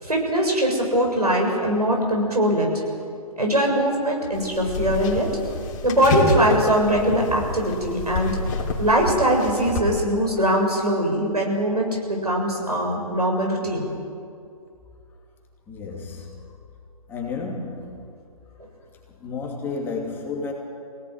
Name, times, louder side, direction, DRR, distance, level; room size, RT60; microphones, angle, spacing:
voice 1, 0.0-2.7 3.4-5.3 5.8-8.3 8.8-14.0, equal, 85° right, 0 dB, 7.3 m, -21 dB
sound 1, 4.3-9.8, left 3 dB, 30° left, 3.6 m, -29 dB
voice 2, 15.7-16.5 17.1-18.1 19.2-20.5, left 4 dB, 10° left, -1 dB, 2.8 m, -32 dB
24.5 x 18.0 x 9.6 m, 2.4 s
figure-of-eight pair, 135°, 19 cm